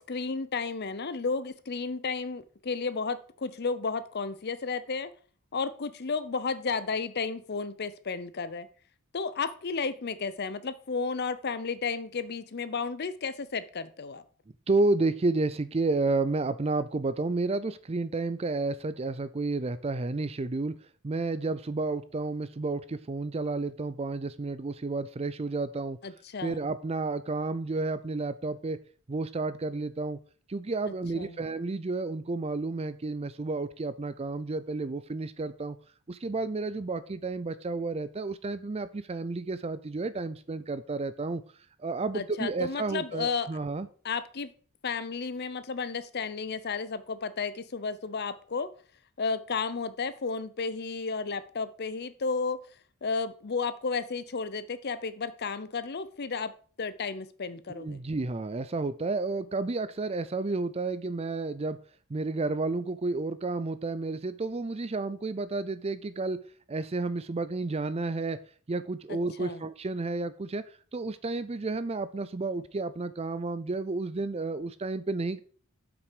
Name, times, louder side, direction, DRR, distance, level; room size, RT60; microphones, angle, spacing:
voice 1, 0.0-5.1 5.5-8.7 9.1-14.2 26.0-26.6 31.2-31.4 42.1-43.5 44.0-44.5 44.8-48.7 49.2-52.6 53.0-56.5 56.8-58.0 69.1-69.7, left 4 dB, 50° left, 14 dB, 0.6 m, -33 dB
voice 2, 14.7-20.8 21.0-26.0 26.4-28.8 29.1-30.2 30.5-35.8 36.1-41.4 41.8-43.9 57.7-61.8 62.1-66.4 66.7-68.4 68.7-70.6 70.9-75.4, right 3 dB, 30° right, 14 dB, 0.5 m, -31 dB
7.9 x 6.1 x 5.0 m, 0.41 s
head